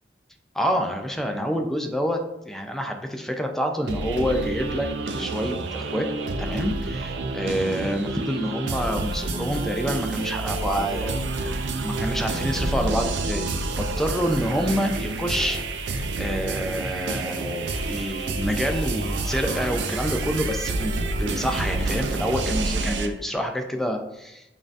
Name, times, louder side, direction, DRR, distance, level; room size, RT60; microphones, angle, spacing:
voice 1, 0.5-2.2 2.5-4.9 5.2-6.1 6.4-11.5 11.8-13.5 13.8-15.6 16.2-20.9 21.2-24.5, equal, ahead, 4 dB, 0.3 m, -27 dB
sound 1, 3.9-23.1, right 2 dB, 85° right, 0.4 m, -28 dB
5.2 x 2.6 x 2.5 m, 0.88 s
head